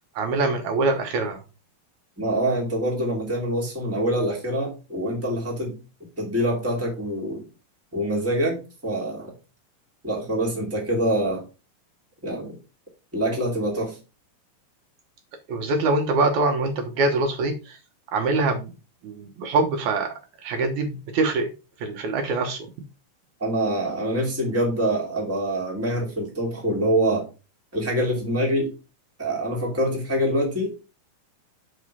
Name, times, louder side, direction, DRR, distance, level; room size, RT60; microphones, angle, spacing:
voice 1, 0.2-1.4 15.5-17.8 18.1-18.7 19.0-20.1 20.4-21.5 21.8-22.7, right 3 dB, 70° right, 5 dB, 2.2 m, -24 dB
voice 2, 2.2-5.8 6.2-7.5 7.9-9.3 10.0-11.4 12.2-12.6 13.1-14.0 23.4-27.2 27.7-28.7 29.2-30.7, right 1 dB, 5° right, -1 dB, 2.0 m, -25 dB
6.5 x 4.9 x 5.4 m, 0.31 s
omnidirectional pair, 3.8 m